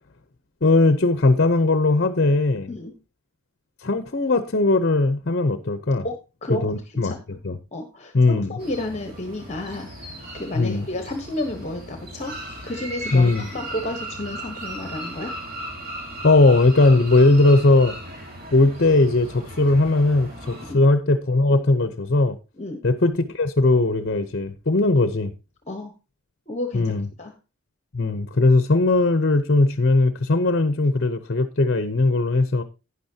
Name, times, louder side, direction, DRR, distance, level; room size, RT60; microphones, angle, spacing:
voice 1, 0.6-2.7 3.8-6.1 6.5-7.6 8.1-8.6 10.5-10.9 13.1-13.5 16.2-18.0 18.5-22.4 22.8-25.3 26.7-27.1 27.9-32.6, left 2 dB, 50° left, 0.7 m, -19 dB
voice 2, 7.7-8.1 8.5-12.3 12.6-15.3 20.6-20.8 22.6-22.8 25.7-25.9 26.5-27.3, left 1 dB, 30° left, 1.1 m, -31 dB
sound 1, 8.6-20.7, right 1 dB, 45° right, 3.2 m, -37 dB
12.0 x 9.6 x 2.8 m
head